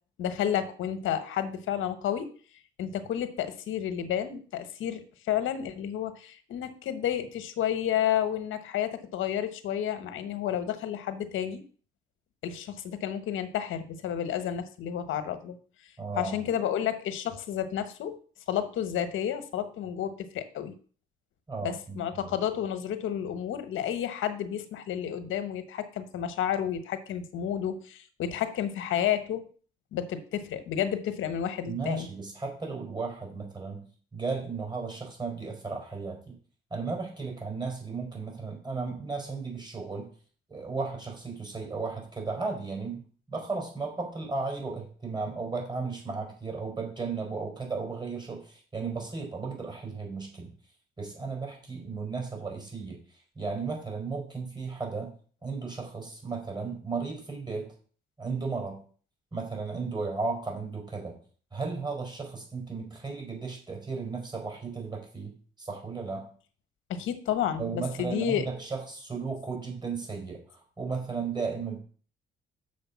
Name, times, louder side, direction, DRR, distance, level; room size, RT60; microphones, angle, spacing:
voice 1, 0.2-2.3 2.8-11.6 12.4-15.6 16.2-18.2 18.5-20.7 21.6-29.5 29.9-32.1 66.9-68.5, left 10 dB, 80° left, 10 dB, 1.2 m, -31 dB
voice 2, 16.0-16.5 21.5-22.3 31.7-33.9 34.1-36.4 36.7-40.1 40.5-43.0 43.3-50.5 51.0-55.1 55.4-57.7 58.2-58.8 59.3-61.2 61.5-66.2 67.6-71.8, right 4 dB, 20° right, 0 dB, 4.7 m, -35 dB
6.8 x 5.1 x 7.1 m, 0.42 s
cardioid pair, 90°, 20 cm